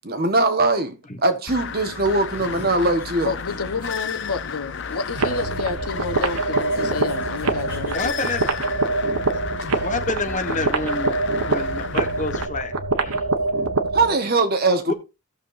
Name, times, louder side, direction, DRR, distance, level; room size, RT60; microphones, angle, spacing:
voice 1, 0.0-3.3 13.9-14.9, right 2 dB, 45° right, 1.3 m, -21 dB
sound 1, 1.5-12.5, left 6 dB, 55° left, 0.6 m, -33 dB
sound 2, 2.2-8.4, right 1 dB, 10° right, 4.4 m, -46 dB
voice 2, 3.2-8.1, left 4 dB, 80° left, 1.2 m, -30 dB
sound 3, 5.1-14.2, right 3 dB, 85° right, 1.2 m, -24 dB
voice 3, 7.9-8.7 9.8-12.7 13.0-13.3 14.9-15.0, left 2 dB, 35° left, 1.4 m, -28 dB
17.0 x 6.7 x 2.6 m
head